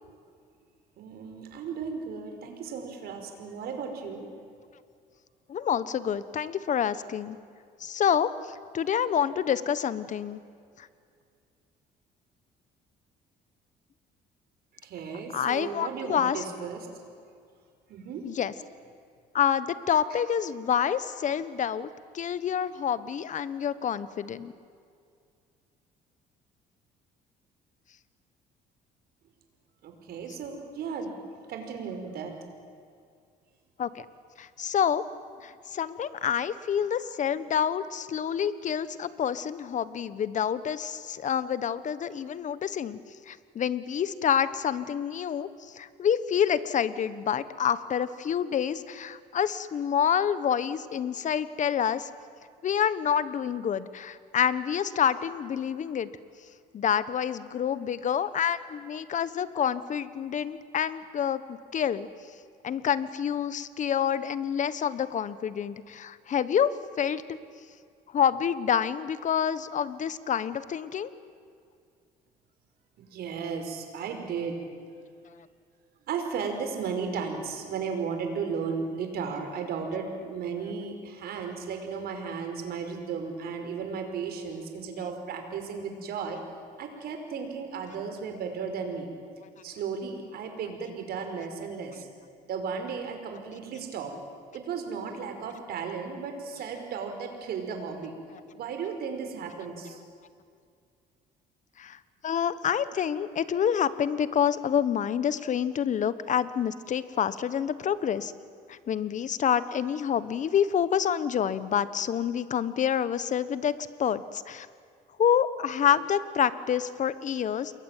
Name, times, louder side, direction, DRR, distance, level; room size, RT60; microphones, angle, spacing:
voice 1, 1.0-4.3 14.8-16.9 17.9-18.2 29.8-31.1 31.5-32.3 73.0-74.6 76.1-86.4 86.8-89.1 89.6-92.1 92.5-94.1 94.5-98.2 98.5-100.0, right 6 dB, 65° right, 5 dB, 5.3 m, -35 dB
voice 2, 5.5-7.4 7.8-10.4 10.8-10.9 15.3-16.4 18.2-18.5 19.3-21.9 22.1-24.5 33.8-34.1 34.4-35.0 35.4-43.0 43.3-52.1 52.6-56.1 56.7-62.1 62.6-67.4 68.1-71.1 101.8-108.3 108.7-114.7 115.2-117.7, left 8 dB, 45° left, 15 dB, 1.4 m, -28 dB
28.0 x 22.5 x 9.2 m, 2.3 s
cardioid pair, 110°, 17 cm